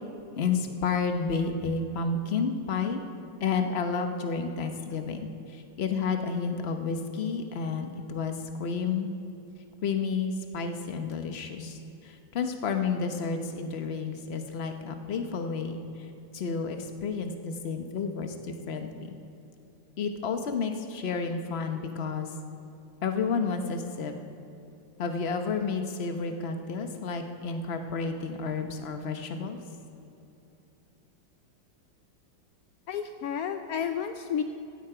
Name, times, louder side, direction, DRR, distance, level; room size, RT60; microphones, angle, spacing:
voice 1, 0.3-3.0 3.4-5.3 5.8-8.3 8.6-9.1 9.8-11.8 12.0-15.8 16.3-19.1 20.0-22.3 23.0-24.1 25.0-29.6, left 5 dB, 45° left, 6 dB, 0.9 m, -31 dB
voice 2, 32.9-34.4, left 8 dB, 80° left, 8 dB, 0.8 m, -31 dB
16.0 x 13.5 x 4.9 m, 2.9 s
omnidirectional pair, 2.2 m